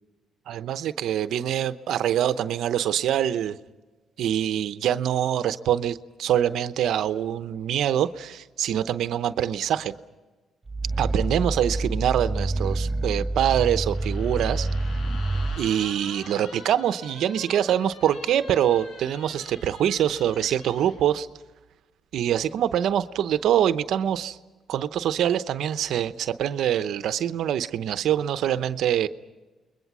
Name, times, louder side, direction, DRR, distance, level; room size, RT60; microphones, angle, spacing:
voice 1, 0.5-3.6 4.2-9.9 11.0-14.7 15.5-21.3 22.1-24.4 24.7-29.1, right 10 dB, 75° right, 12 dB, 0.8 m, -24 dB
Growling, 10.7-15.6, right 2 dB, 20° right, 2.7 m, -27 dB
sound 1, 13.9-21.0, left 4 dB, 65° left, 4.8 m, -45 dB
29.0 x 22.0 x 6.2 m, 1.2 s
cardioid pair, 90°, 0 cm